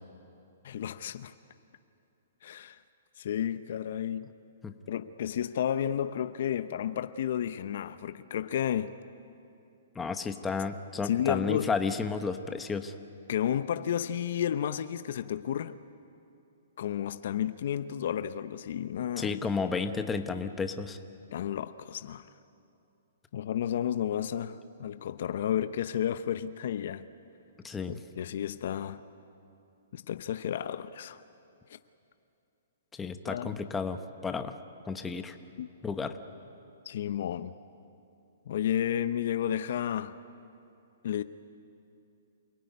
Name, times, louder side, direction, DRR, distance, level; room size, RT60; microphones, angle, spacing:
voice 1, 0.6-1.3 2.4-2.8 3.2-4.3 4.9-9.0 11.0-11.7 13.3-15.8 16.8-19.4 21.3-22.3 23.3-27.1 27.9-29.0 29.9-31.2 31.7-31.8 33.2-33.5 35.6-35.7 36.9-37.5 38.5-40.2 41.0-41.2, left 10 dB, 60° left, 0.7 m, -32 dB
voice 2, 9.9-12.9 19.2-21.0 27.6-27.9 33.0-34.5 34.9-35.4 35.8-36.1, left 5 dB, 10° left, 1.1 m, -32 dB
28.0 x 18.0 x 9.5 m
hypercardioid pair, 145°, 0 cm